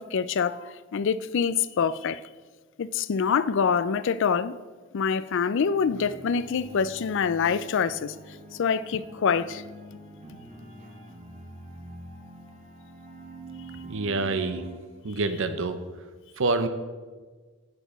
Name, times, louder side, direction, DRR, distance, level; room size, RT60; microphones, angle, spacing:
voice 1, 0.0-2.2 2.8-4.5 4.9-8.1 8.6-9.6, left 6 dB, 60° left, 0.4 m, -25 dB
sound 1, 5.6-14.8, right 2 dB, 35° right, 1.3 m, -45 dB
voice 2, 13.9-14.6 15.0-15.8 16.4-16.7, right 3 dB, 60° right, 0.7 m, -26 dB
7.8 x 7.3 x 7.0 m
head